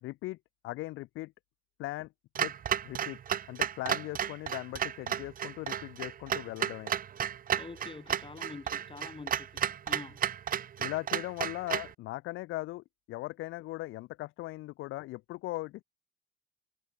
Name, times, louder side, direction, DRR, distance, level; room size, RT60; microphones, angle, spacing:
voice 1, 0.0-0.4 0.6-1.3 1.8-2.1 2.4-2.5 2.8-3.2 3.5-6.9 10.8-15.8, left 18 dB, 90° left, 0.5 m, -39 dB
Clock, 2.4-11.9, right 9 dB, 45° right, 0.6 m, -33 dB
voice 2, 7.5-10.2, left 4 dB, 25° left, 2.0 m, -46 dB
cardioid pair, 90°, 20 cm